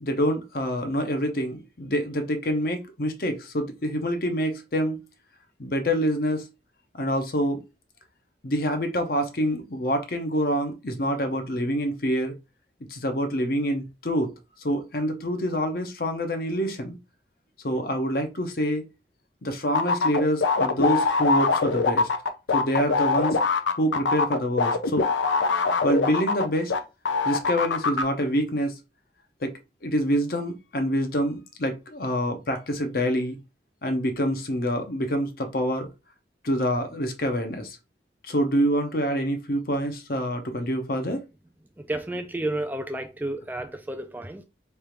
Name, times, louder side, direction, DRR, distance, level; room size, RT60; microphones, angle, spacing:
voice 1, 0.0-5.0 5.6-6.5 6.9-7.6 8.4-12.3 12.9-14.3 14.6-17.0 17.6-18.9 19.4-22.1 22.5-23.4 23.8-25.1 25.8-26.7 27.2-28.8 29.4-29.5 29.8-33.4 33.8-35.9 36.4-37.8 38.2-41.2, equal, 55° left, 0.7 m, -26 dB
sound 1, 19.7-26.8 27.1-28.0, left 4 dB, 90° left, 0.6 m, -23 dB
voice 2, 41.9-44.4, right 1 dB, 10° right, 0.3 m, -31 dB
3.3 x 2.5 x 4.4 m
head